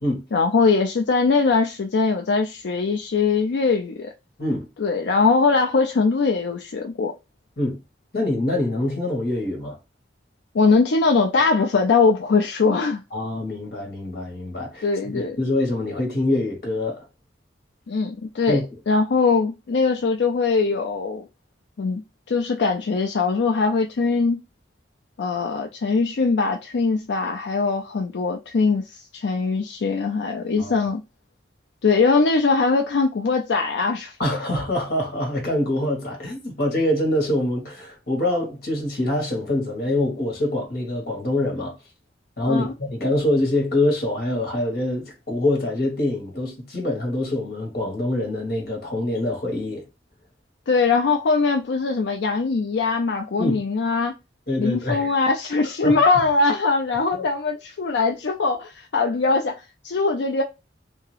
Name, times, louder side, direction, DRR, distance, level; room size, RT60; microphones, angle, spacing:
voice 1, 0.3-4.1 4.8-7.1 10.5-13.0 14.8-15.4 17.9-18.6 18.9-21.2 21.8-22.0 22.3-24.4 25.2-31.0 31.8-34.1 42.5-42.7 50.7-54.1 54.6-60.4, left 4 dB, 80° left, 0.4 m, -21 dB
voice 2, 8.1-9.8 13.1-17.0 18.5-18.6 30.6-30.8 34.2-41.8 42.4-49.8 53.4-53.6 54.5-55.1 55.8-56.0 57.1-57.2, left 1 dB, 55° left, 1.5 m, -25 dB
3.5 x 2.8 x 3.3 m
head